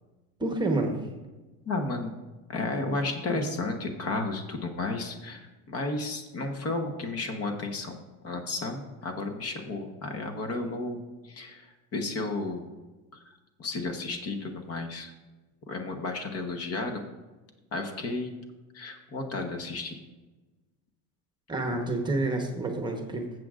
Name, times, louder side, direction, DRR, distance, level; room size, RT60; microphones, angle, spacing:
voice 1, 0.4-1.0 21.5-23.2, right 2 dB, 10° right, 2 dB, 1.1 m, -28 dB
voice 2, 1.7-2.2 2.5-12.6 13.1-13.3 13.6-15.1 15.7-17.0 17.7-18.3 18.7-20.0, left 2 dB, 40° left, 5 dB, 1.2 m, -33 dB
13.5 x 7.8 x 2.5 m, 1.2 s
supercardioid pair, 125°, 39 cm